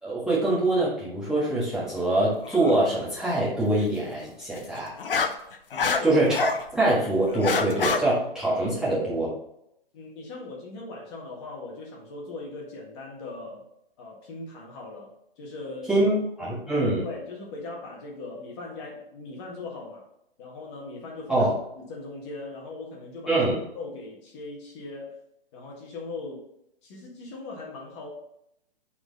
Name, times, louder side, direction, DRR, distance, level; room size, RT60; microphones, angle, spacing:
voice 1, 0.0-4.9 6.0-9.3 15.9-17.0 21.3-21.5 23.3-23.6, right 2 dB, ahead, -9 dB, 1.5 m, -24 dB
sound 1, 2.4-2.7 4.6-6.6 7.0-8.0, left 5 dB, 65° left, 0.9 m, -26 dB
voice 2, 5.7-6.1 9.9-13.6 14.0-16.1 16.4-16.5 17.0-20.1 20.4-23.4 23.7-25.2 25.5-26.5 26.8-28.1, left 3 dB, 30° left, -2 dB, 1.7 m, -39 dB
7.7 x 4.3 x 3.9 m, 0.78 s
figure-of-eight pair, 140°, 30 cm